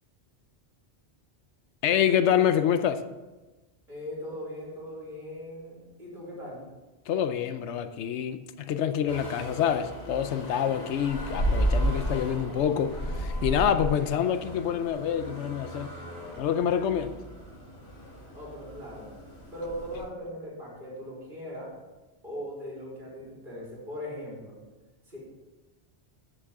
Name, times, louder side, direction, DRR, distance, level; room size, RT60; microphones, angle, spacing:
voice 1, 1.8-3.0 7.1-15.9 16.4-17.2, left 9 dB, 85° left, 0.9 m, -26 dB
voice 2, 3.9-6.7 18.3-19.1 19.5-21.7 22.2-24.6 25.1-25.2, equal, 45° right, 4.0 m, -39 dB
sound 1, 9.1-20.0, right 1 dB, 65° left, 2.7 m, -33 dB
14.0 x 6.6 x 3.6 m
omnidirectional pair, 1.1 m